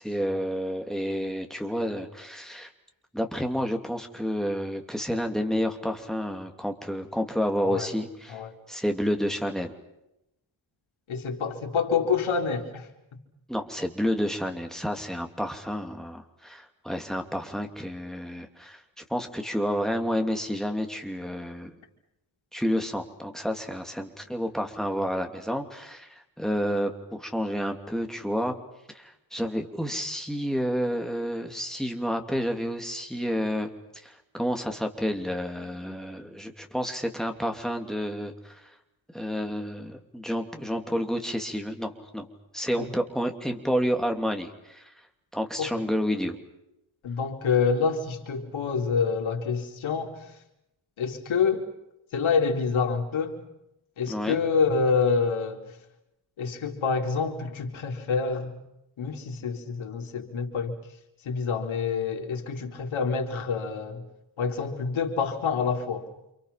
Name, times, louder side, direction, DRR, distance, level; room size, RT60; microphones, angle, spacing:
voice 1, 0.0-2.7 3.1-8.4 8.7-9.7 13.5-21.7 22.5-28.6 28.9-33.7 34.0-38.7 39.1-42.3 42.5-44.9 45.3-46.4 54.1-54.4, equal, ahead, 4 dB, 2.8 m, -30 dB
voice 2, 11.1-12.9 42.8-42.9 45.6-45.7 47.0-50.3 51.0-51.6 52.1-53.4 54.0-55.6 56.4-58.5 59.0-60.7 61.2-64.0 64.4-66.1, left 5 dB, 85° left, 2 dB, 4.4 m, -27 dB
29.5 x 28.0 x 5.9 m, 0.86 s
wide cardioid pair, 170°, 46 cm